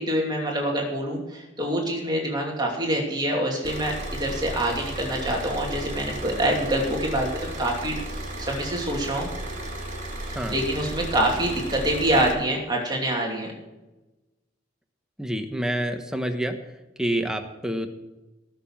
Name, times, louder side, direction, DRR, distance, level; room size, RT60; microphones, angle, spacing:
voice 1, 0.0-3.9 4.2-8.0 8.4-9.3 10.3-13.5, right 1 dB, 25° right, -1 dB, 2.7 m, -26 dB
Car / Idling, 3.6-12.3, right 1 dB, 45° right, 3.9 m, -34 dB
voice 2, 15.2-16.6 17.0-17.9, right 1 dB, 5° right, 5 dB, 1.3 m, -27 dB
18.0 x 6.9 x 7.5 m, 1.0 s
head